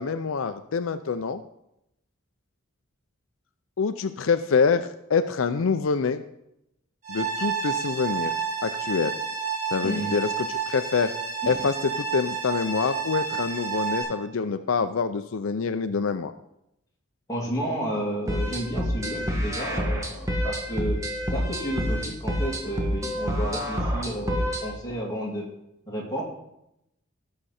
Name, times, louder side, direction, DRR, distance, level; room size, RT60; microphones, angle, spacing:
voice 1, 0.0-1.4 3.8-6.2 7.1-8.3 8.6-9.1 9.7-11.1 11.5-16.3, left 5 dB, 75° left, 10 dB, 0.5 m, -26 dB
sound 1, 7.0-14.0, right 6 dB, 35° right, 3.2 m, -30 dB
voice 2, 9.8-10.1 11.4-11.6 17.3-21.0 21.3-25.4 25.9-26.2, equal, 15° left, -4 dB, 2.8 m, -31 dB
sound 2, 18.3-24.7, equal, 15° right, 1.3 m, -28 dB
16.0 x 6.6 x 4.3 m, 0.82 s
head